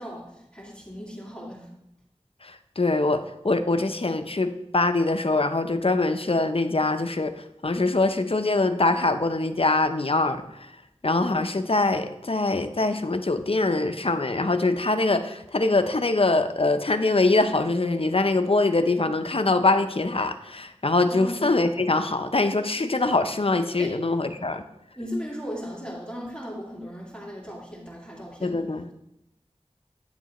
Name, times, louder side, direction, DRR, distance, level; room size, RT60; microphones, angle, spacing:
voice 1, 0.0-1.7 21.1-21.4 23.8-23.9 25.0-28.6, equal, 10° left, -4 dB, 2.0 m, -37 dB
voice 2, 2.4-10.7 11.0-24.6 28.4-28.9, left 2 dB, 55° left, 9 dB, 0.6 m, -23 dB
9.7 x 7.1 x 3.0 m, 0.85 s
wide cardioid pair, 40°, 12 cm